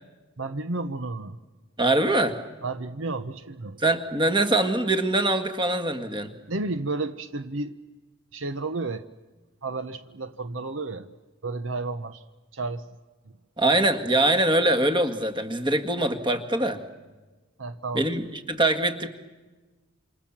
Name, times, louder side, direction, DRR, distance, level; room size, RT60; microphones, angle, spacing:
voice 1, 0.4-1.4 2.6-3.8 6.5-7.8 8.3-9.0 9.6-11.1 11.4-12.2 12.5-12.8 13.7-13.8 17.6-18.1, right 3 dB, 65° right, 11 dB, 0.9 m, -32 dB
voice 2, 1.8-2.4 3.8-6.3 13.6-16.8 17.9-19.1, right 1 dB, 20° right, 8 dB, 1.8 m, -23 dB
28.0 x 27.5 x 7.3 m, 1.2 s
head